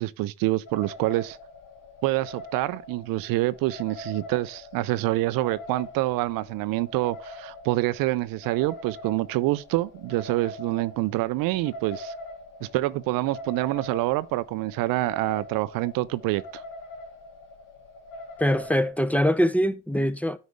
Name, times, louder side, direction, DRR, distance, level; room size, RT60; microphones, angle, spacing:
voice 1, 0.0-1.4 2.0-12.1 12.6-16.6, right 18 dB, 75° right, 0.5 m, -26 dB
sound 1, 0.7-18.9, left 1 dB, 65° left, 1.5 m, -43 dB
voice 2, 18.4-20.4, equal, 5° left, 0.8 m, -23 dB
9.5 x 5.1 x 3.5 m
hypercardioid pair, 45°, 34 cm